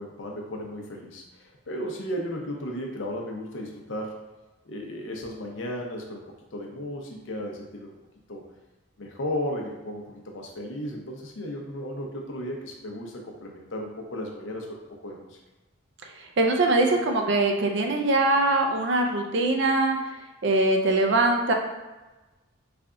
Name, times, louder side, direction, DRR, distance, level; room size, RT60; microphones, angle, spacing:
voice 1, 0.0-4.2 4.7-6.2 6.5-7.9 8.3-8.4 9.0-15.2, equal, 65° left, 1 dB, 0.6 m, -35 dB
voice 2, 16.4-20.0 20.4-21.5, right 2 dB, 60° right, 3 dB, 0.5 m, -22 dB
3.3 x 2.4 x 3.7 m, 1.1 s
head